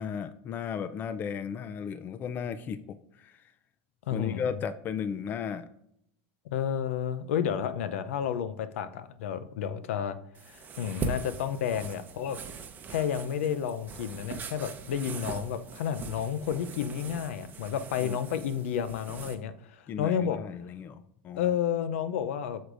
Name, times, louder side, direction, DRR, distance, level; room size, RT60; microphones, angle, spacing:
voice 1, 0.0-3.4 4.1-5.7 18.0-18.2 19.9-21.6, left 7 dB, 30° left, 12 dB, 0.4 m, -35 dB
voice 2, 4.1-4.4 6.5-10.2 10.4-12.4 12.9-20.4 21.4-22.6, left 8 dB, 85° left, 12 dB, 0.5 m, -31 dB
sound 1, 10.3-19.3, right 5 dB, 25° right, 0.7 m, -41 dB
7.9 x 6.4 x 2.5 m, 0.75 s
supercardioid pair, 135°, 7 cm